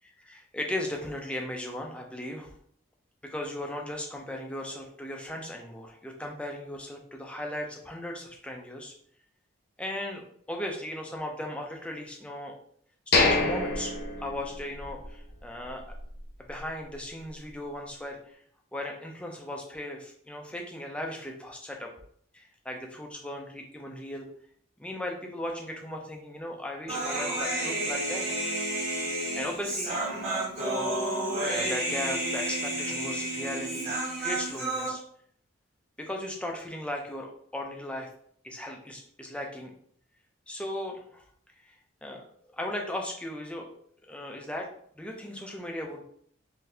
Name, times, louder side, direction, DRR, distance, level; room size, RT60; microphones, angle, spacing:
voice 1, 0.0-2.5 3.2-8.9 9.8-12.5 13.1-13.9 14.2-15.8 16.4-18.4 18.7-21.9 22.3-24.3 24.8-28.3 28.9-30.0 30.6-31.0 31.5-35.0 36.0-38.1 38.4-39.7 40.5-41.2 41.6-41.8 42.0-43.7 44.1-44.7 45.0-46.0, left 1 dB, 5° left, 1 dB, 0.4 m, -37 dB
sound 1, 13.1-15.1 15.4-15.5 16.0-16.2, left 3 dB, 50° left, 0.7 m, -26 dB
Human voice, 26.9-34.9, right 1 dB, 30° right, 1.3 m, -31 dB
3.9 x 2.6 x 2.7 m, 0.64 s
head